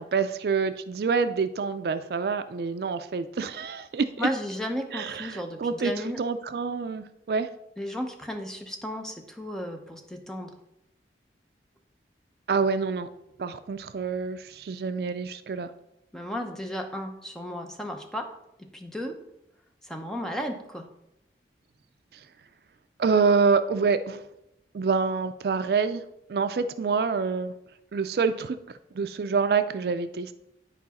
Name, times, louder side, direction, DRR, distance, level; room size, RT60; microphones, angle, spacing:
voice 1, 0.0-4.3 4.9-5.9 6.2-7.5 12.5-13.1 13.4-15.7 23.0-24.2 24.7-26.0 26.3-27.5 27.9-28.6 29.0-30.4, right 5 dB, 60° right, 11 dB, 0.4 m, -26 dB
voice 2, 4.2-6.2 7.8-10.5 16.1-18.3 18.6-19.2 19.8-20.9, equal, 5° left, 4 dB, 0.7 m, -34 dB
9.9 x 4.7 x 4.1 m, 0.83 s
head